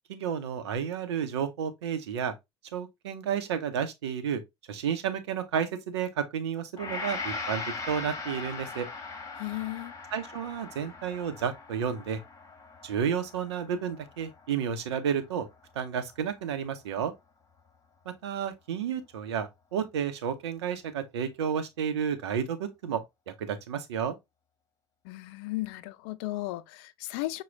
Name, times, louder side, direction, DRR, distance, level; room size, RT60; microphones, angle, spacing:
voice 1, 0.1-2.3 2.7-4.4 4.7-8.9 10.1-12.2 12.8-15.5 15.7-17.1 18.2-24.2, right 8 dB, 80° right, 0.7 m, -31 dB
Gong, 6.8-15.1 15.5-15.7, left 4 dB, 25° left, 1.4 m, -40 dB
voice 2, 9.4-9.9 25.0-27.4, left 18 dB, 70° left, 0.4 m, -35 dB
6.1 x 2.2 x 3.2 m
hypercardioid pair, 65°, 14 cm